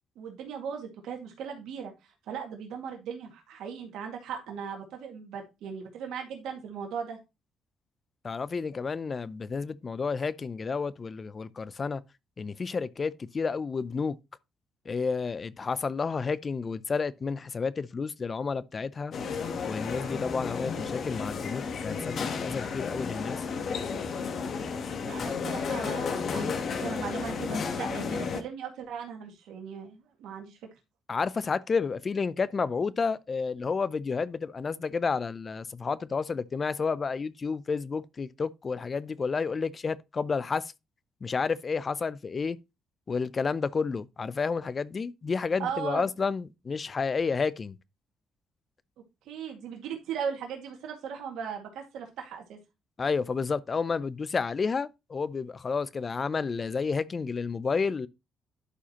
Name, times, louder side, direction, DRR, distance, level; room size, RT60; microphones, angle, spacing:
voice 1, 0.2-7.2 25.0-30.6 45.6-46.1 49.3-52.6, right 7 dB, 85° right, 2.0 m, -38 dB
voice 2, 8.2-12.0 12.4-14.2 14.9-19.1 19.7-23.4 25.2-25.4 31.1-40.7 41.2-42.6 43.1-47.8 53.0-58.1, left 5 dB, 35° left, 0.5 m, -30 dB
sound 1, 19.1-28.4, left 5 dB, 60° left, 1.1 m, -32 dB
11.0 x 4.8 x 2.9 m
cardioid pair, 90°, 0 cm